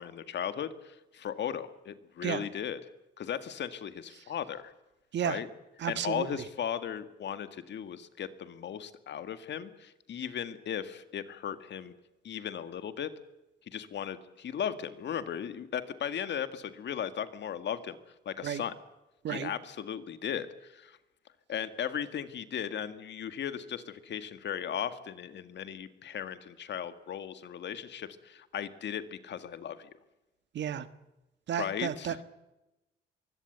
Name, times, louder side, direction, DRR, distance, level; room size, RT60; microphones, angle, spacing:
voice 1, 0.0-2.8 3.2-4.7 5.2-5.5 5.9-11.9 12.2-13.1 13.7-18.0 18.3-18.7 19.3-21.0 21.5-29.9 31.6-32.2, left 9 dB, 65° left, 11 dB, 2.0 m, -37 dB
voice 2, 5.8-6.3 18.4-18.6 19.2-19.5 30.5-30.9 31.5-32.2, right 9 dB, 65° right, 12 dB, 1.5 m, -32 dB
23.0 x 17.0 x 8.1 m, 0.98 s
cardioid pair, 90°, 20 cm